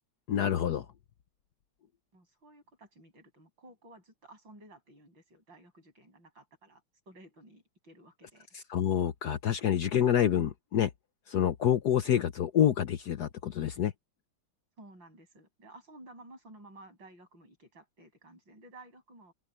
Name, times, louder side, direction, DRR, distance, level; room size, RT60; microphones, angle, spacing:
voice 1, 0.3-0.9 8.5-10.9 11.3-13.9, left 10 dB, 60° left, 1.2 m, -27 dB
voice 2, 2.1-8.5 14.8-19.3, right 1 dB, 65° right, 8.9 m, -54 dB
omnidirectional pair, 2.2 m